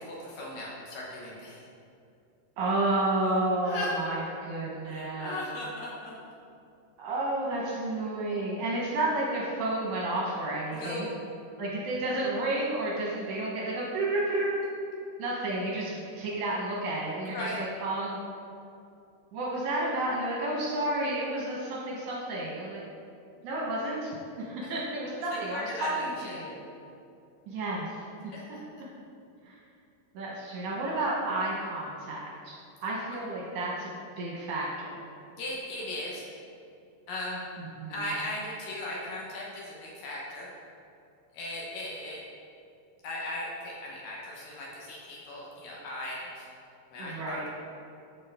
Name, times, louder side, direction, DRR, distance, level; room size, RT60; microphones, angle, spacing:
voice 1, 0.0-1.6 3.6-3.9 4.9-6.2 10.7-11.1 17.3-17.6 24.6-24.7 25.3-26.4 28.3-28.7 35.4-36.3 37.1-37.4 37.9-40.5 41.3-42.2 43.0-46.5 46.9-47.5, left 1 dB, 70° left, -4 dB, 2.4 m, -37 dB
voice 2, 2.6-5.4 7.0-11.1 11.6-14.6 15.2-18.2 19.3-22.8 23.4-24.1 24.4-26.6 27.5-28.0 28.2-28.6 29.5-29.6 30.1-33.9 34.2-35.1 37.6-38.0 47.0-47.5, right 2 dB, 75° right, -4 dB, 1.8 m, -31 dB
12.5 x 4.6 x 3.4 m, 2.6 s
omnidirectional pair, 4.8 m